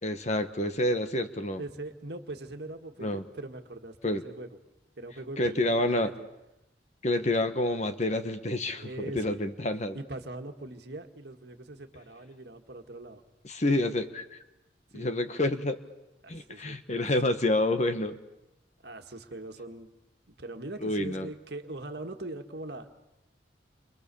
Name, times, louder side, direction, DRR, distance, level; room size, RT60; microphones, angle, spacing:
voice 1, 0.0-1.6 3.0-3.2 4.0-4.2 5.4-6.1 7.0-10.0 13.4-14.4 14.9-15.8 16.3-18.2 20.8-21.3, left 1 dB, 35° left, 8 dB, 1.4 m, -28 dB
voice 2, 1.6-4.5 5.0-6.3 8.8-9.4 9.9-13.2 14.9-15.2 16.2-17.1 18.8-19.9 20.4-22.9, right 2 dB, 55° right, 5 dB, 1.9 m, -41 dB
29.5 x 25.5 x 7.0 m, 0.92 s
head